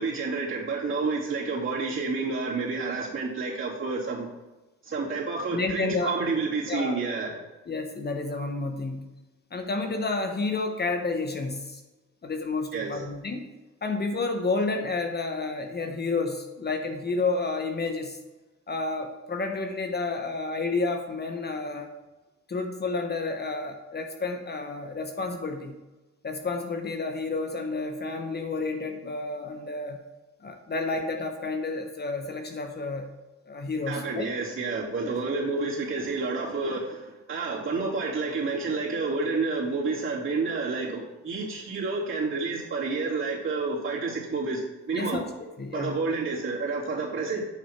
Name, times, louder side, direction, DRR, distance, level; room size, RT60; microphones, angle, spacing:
voice 1, 0.0-4.3 4.8-7.3 12.7-13.0 33.9-44.6 44.9-45.2 45.7-47.4, right 4 dB, 40° right, -6 dB, 3.3 m, -29 dB
voice 2, 5.5-6.2 6.7-7.0 7.7-9.1 9.5-11.8 12.2-13.5 13.8-18.2 18.7-21.9 22.5-25.7 26.2-30.0 30.4-33.1 33.5-34.3 35.0-35.1 44.9-45.2 45.6-46.0, left 3 dB, 35° left, 5 dB, 1.0 m, -30 dB
8.6 x 6.3 x 4.6 m, 1.1 s
cardioid pair, 90°, 30 cm